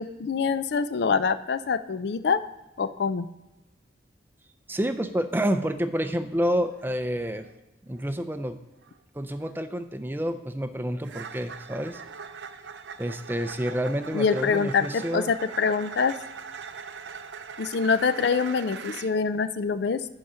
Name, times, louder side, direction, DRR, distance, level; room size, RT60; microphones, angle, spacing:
voice 1, 0.0-2.4 2.8-3.3 14.1-16.2 17.6-20.0, left 5 dB, 65° left, 13 dB, 0.4 m, -25 dB
voice 2, 4.7-7.5 7.8-8.6 9.1-12.0 13.0-15.3, equal, 10° right, 9 dB, 0.4 m, -29 dB
sound 1, 5.6-5.7 5.9-6.3 6.7-6.9 7.3-7.5 7.9-8.2 8.8-9.0 9.4-9.5 11.0-19.1, right 6 dB, 75° right, 0.5 m, -41 dB
10.5 x 4.9 x 5.6 m, 1.0 s
head